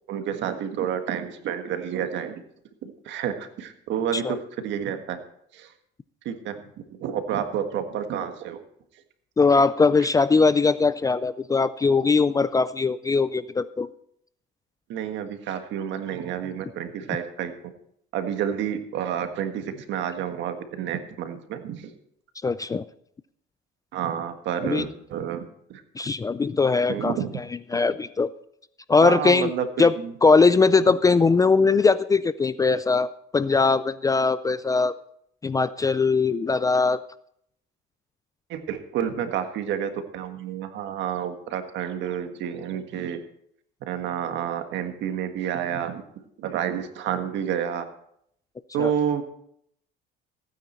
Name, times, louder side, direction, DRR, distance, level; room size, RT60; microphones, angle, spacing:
voice 1, 0.1-2.4 2.8-5.2 5.5-5.7 6.2-6.6 7.0-8.6 14.9-17.5 18.1-21.9 23.9-25.8 26.9-27.4 29.0-30.1 38.5-43.2 43.9-46.0 46.4-47.8 48.7-49.2, right 9 dB, 65° right, 7 dB, 1.6 m, -29 dB
voice 2, 9.4-13.9 22.4-22.8 24.7-24.8 26.0-27.1 27.7-28.3 28.9-29.5 29.8-29.9 30.2-34.9 35.4-37.0 48.8-48.9, left 4 dB, 15° left, 15 dB, 0.4 m, -20 dB
15.5 x 9.4 x 4.4 m, 0.71 s
cardioid pair, 120°, 20 cm